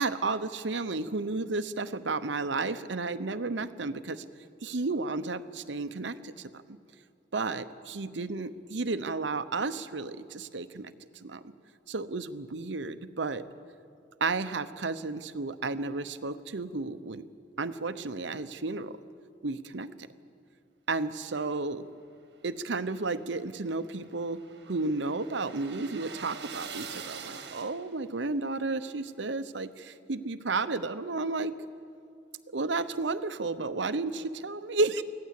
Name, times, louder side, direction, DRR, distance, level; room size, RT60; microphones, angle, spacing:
voice 1, 0.0-4.2 4.6-6.8 7.3-10.9 11.2-11.4 11.9-13.4 14.2-17.2 17.6-19.0 19.4-20.1 20.9-21.9 22.4-24.4 24.7-31.6 32.5-35.0, right 3 dB, 75° right, 12 dB, 0.9 m, -32 dB
sound 1, 22.6-28.1, right 6 dB, 60° right, 1.7 m, -44 dB
24.5 x 16.5 x 8.4 m, 2.4 s
head